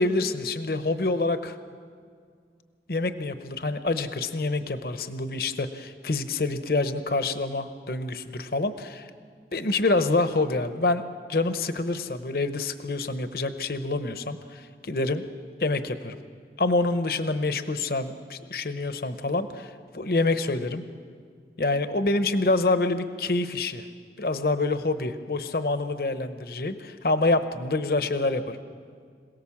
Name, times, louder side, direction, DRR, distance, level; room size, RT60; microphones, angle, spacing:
voice 1, 0.0-1.6 2.9-9.1 9.5-11.0 11.3-15.2 15.6-16.2 16.6-20.8 21.6-23.9 24.2-28.6, left 2 dB, 55° left, 10 dB, 0.9 m, -26 dB
26.5 x 18.0 x 7.3 m, 2.1 s
head